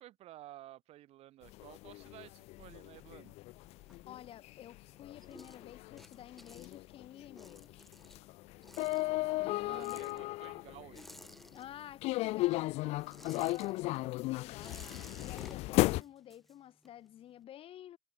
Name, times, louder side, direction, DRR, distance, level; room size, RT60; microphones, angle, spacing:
voice 1, 0.0-3.4 9.0-11.1, right 14 dB, 75° right, 4.0 m, -54 dB
sound 1, 1.5-11.3 12.0-16.0, left 20 dB, 90° left, 0.4 m, -35 dB
sound 2, 3.5-4.6 4.9-12.1 12.4-17.1, equal, ahead, 1.1 m, -56 dB
voice 2, 4.1-7.8 9.4-10.2 11.5-12.8 13.3-18.0, left 11 dB, 60° left, 2.5 m, -51 dB
cardioid pair, 130°, 11 cm